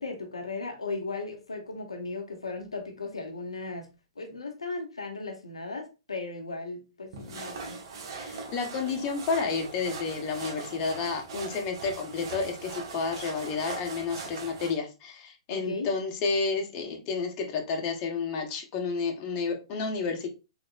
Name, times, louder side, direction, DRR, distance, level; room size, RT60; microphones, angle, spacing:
voice 1, 0.0-3.9 4.2-7.8 15.5-15.9, left 3 dB, 90° left, 0.9 m, -36 dB
sound 1, 7.1-14.8, right 4 dB, 55° right, 1.1 m, -40 dB
voice 2, 8.1-20.3, left 4 dB, 35° left, 1.1 m, -31 dB
4.0 x 3.5 x 2.4 m
hypercardioid pair, 120°, 3 cm